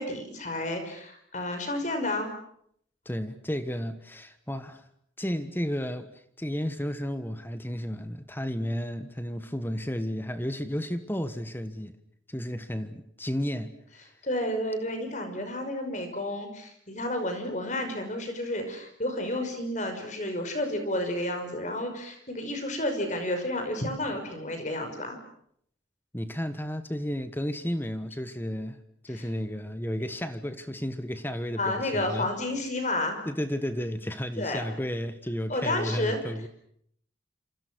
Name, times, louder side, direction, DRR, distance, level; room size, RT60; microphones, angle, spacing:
voice 1, 0.0-2.3 14.2-25.2 31.6-33.2 34.4-34.6 35.5-36.2, left 1 dB, 40° left, 5.6 m, -31 dB
voice 2, 3.0-4.8 5.2-11.9 12.3-13.7 26.1-28.8 29.0-32.3 33.2-36.5, equal, 10° left, 1.4 m, -32 dB
28.0 x 27.5 x 6.3 m
head